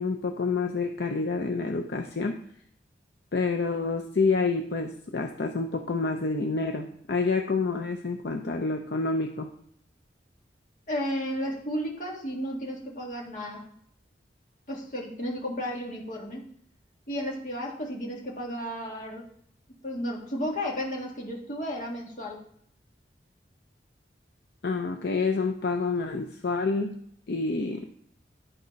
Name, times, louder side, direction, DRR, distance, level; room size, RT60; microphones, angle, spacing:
voice 1, 0.0-2.4 3.3-9.5 24.6-27.0 27.3-27.8, left 4 dB, 65° left, 4 dB, 0.6 m, -28 dB
voice 2, 10.9-13.6 14.7-16.5 17.1-19.3 19.8-22.4, equal, 45° left, -1 dB, 1.8 m, -33 dB
11.0 x 4.2 x 5.2 m, 0.68 s
head